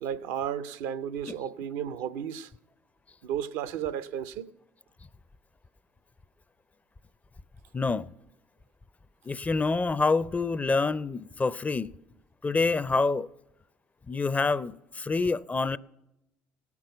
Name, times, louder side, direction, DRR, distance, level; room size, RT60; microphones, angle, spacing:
voice 1, 0.0-2.5 3.2-4.5, right 9 dB, 75° right, 0.6 m, -33 dB
voice 2, 7.7-8.1 9.3-11.9 12.4-13.3 14.1-15.8, left 3 dB, 25° left, 0.4 m, -27 dB
17.5 x 6.0 x 7.9 m
hypercardioid pair, 70°, 6 cm